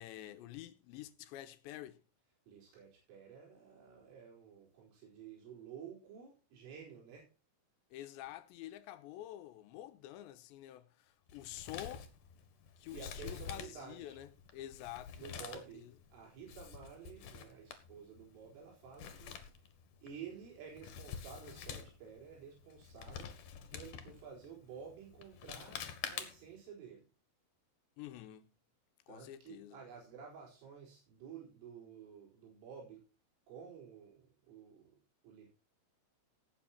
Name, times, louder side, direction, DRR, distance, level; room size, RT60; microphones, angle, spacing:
voice 1, 0.0-2.0 7.9-12.1 12.8-15.2 15.7-15.9 28.0-28.5 29.1-29.8, left 13 dB, 80° left, 2.9 m, -48 dB
voice 2, 2.5-7.3 12.9-14.2 15.2-19.7 20.0-23.3 23.7-27.1 29.1-33.0 33.5-35.0 35.2-35.5, right 7 dB, 85° right, 7.2 m, -52 dB
Male speech man speaking, 11.3-26.6, left 7 dB, 55° left, 2.5 m, -48 dB
17.5 x 8.5 x 4.4 m
omnidirectional pair, 5.6 m